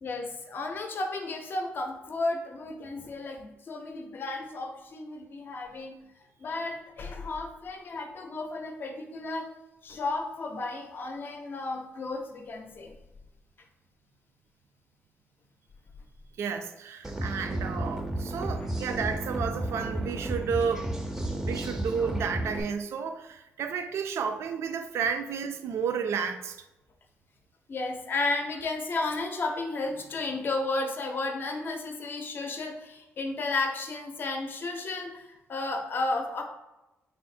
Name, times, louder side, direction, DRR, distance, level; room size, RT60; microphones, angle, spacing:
voice 1, 0.0-6.0 6.4-9.5 9.8-13.0 18.4-18.5 27.7-36.4, left 2 dB, 50° left, 3 dB, 0.6 m, -33 dB
voice 2, 16.4-20.9 21.5-26.6, right 6 dB, 70° right, 8 dB, 0.3 m, -32 dB
sound 1, 17.0-22.6, right 1 dB, 10° right, 0.4 m, -32 dB
3.6 x 2.1 x 4.2 m, 0.98 s
cardioid pair, 95°, 5 cm